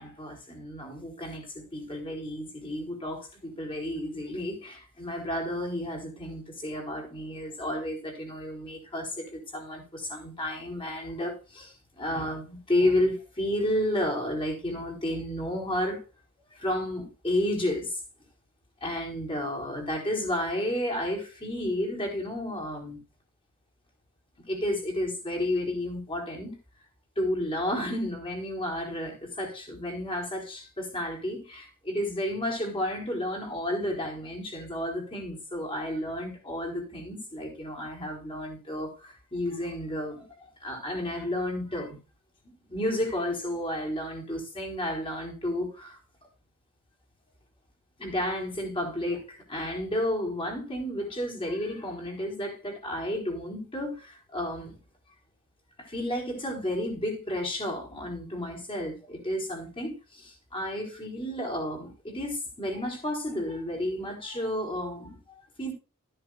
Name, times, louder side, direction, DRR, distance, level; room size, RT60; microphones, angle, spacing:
voice 1, 0.0-16.0 16.5-18.0 18.8-23.0 24.5-26.6 27.2-40.3 40.6-42.0 42.4-46.0 48.0-54.8 55.8-65.2 65.6-65.7, left 1 dB, 25° left, 4.4 m, -32 dB
14.0 x 10.0 x 2.4 m
head